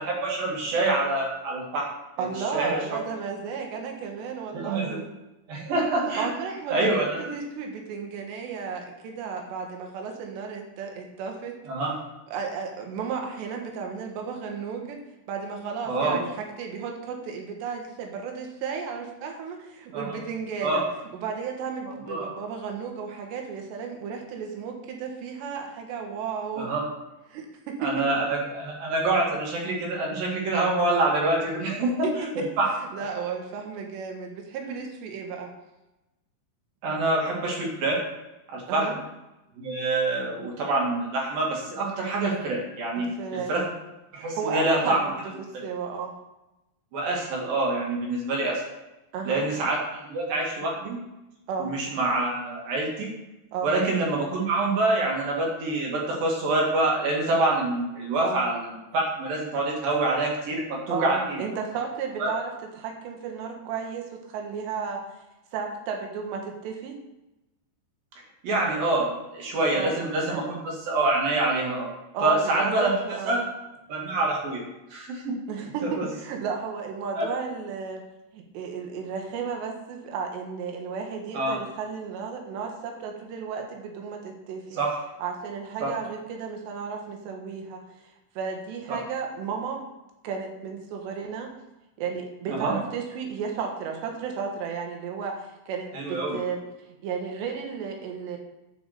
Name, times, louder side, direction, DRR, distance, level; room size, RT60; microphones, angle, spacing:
voice 1, 0.0-1.9 2.2-2.3 2.5-3.0 4.5-5.0 5.5-6.3 6.7-7.2 11.7-11.9 15.9-16.2 19.9-20.2 20.6-20.8 22.1-22.3 26.6-26.8 27.8-32.1 32.6-32.7 34.6-34.8 36.8-38.0 38.5-38.9 39.6-43.7 44.1-45.0 45.5-45.7 46.9-48.6 49.3-51.0 51.6-53.1 53.6-58.6 58.9-61.4 62.2-62.3 68.4-71.9 72.2-72.9 73.3-73.4 73.9-75.4 76.0-76.1 77.2-77.3 81.3-81.6 84.7-85.0 85.8-85.9 88.9-89.0 92.5-92.8 95.9-96.4, right 2 dB, 55° right, -2 dB, 3.7 m, -26 dB
voice 2, 2.2-5.1 6.2-11.6 12.3-15.0 15.3-20.8 21.1-26.7 27.3-27.9 32.0-32.1 32.9-35.5 38.7-39.0 43.0-43.6 44.1-46.2 49.1-49.5 51.5-51.7 53.5-53.7 58.2-58.4 60.9-65.0 65.5-67.0 69.8-69.9 70.3-70.5 72.1-73.5 75.5-78.0 78.3-84.8 85.2-88.1 88.4-89.8 90.2-91.5 92.0-98.4, right 6 dB, 75° right, 2 dB, 3.6 m, -33 dB
10.5 x 6.1 x 6.8 m, 0.97 s
omnidirectional pair, 5.3 m